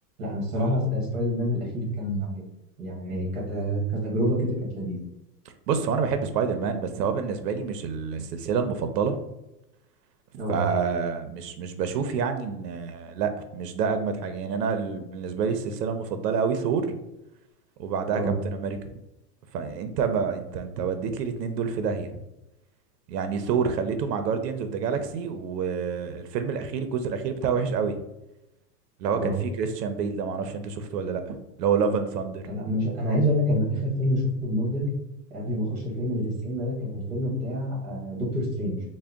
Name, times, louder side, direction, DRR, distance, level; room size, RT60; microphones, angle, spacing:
voice 1, 0.2-2.4 2.8-5.0 10.4-10.6 18.1-18.3 29.2-29.4 32.5-34.9 35.3-38.8, equal, 20° right, -3 dB, 0.8 m, -27 dB
voice 2, 5.7-9.2 10.5-17.0 17.8-18.8 19.5-22.2 23.1-28.0 29.0-32.4, right 6 dB, 85° right, 8 dB, 0.6 m, -28 dB
3.6 x 2.1 x 3.4 m, 0.91 s
supercardioid pair, 180°, 47 cm